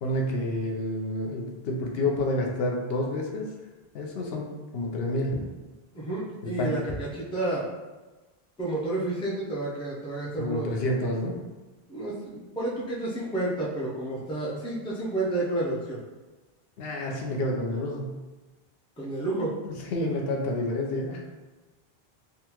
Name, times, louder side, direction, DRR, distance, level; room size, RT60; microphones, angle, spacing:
voice 1, 0.0-3.5 3.9-5.5 6.4-7.0 10.4-11.4 16.8-18.2 19.6-21.2, left 1 dB, 75° left, 0 dB, 0.8 m, -29 dB
voice 2, 5.9-7.7 8.6-10.7 11.9-16.0 19.0-19.5, right 2 dB, 5° left, -5 dB, 0.4 m, -30 dB
3.7 x 2.2 x 2.9 m, 1.2 s
omnidirectional pair, 1.0 m